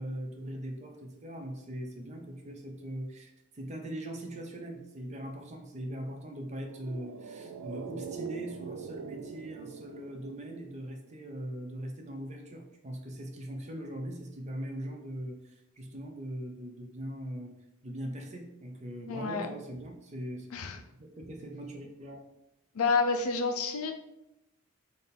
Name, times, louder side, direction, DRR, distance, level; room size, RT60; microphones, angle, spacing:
voice 1, 0.0-17.5 17.8-22.3, right 1 dB, 30° right, 3 dB, 0.6 m, -41 dB
sound 1, 6.5-11.1 11.4-11.5, right 6 dB, 85° right, 0.3 m, -43 dB
voice 2, 19.1-19.5 20.5-20.8 22.8-23.9, left 4 dB, 80° left, 6 dB, 0.5 m, -29 dB
3.6 x 2.7 x 4.1 m, 0.87 s
head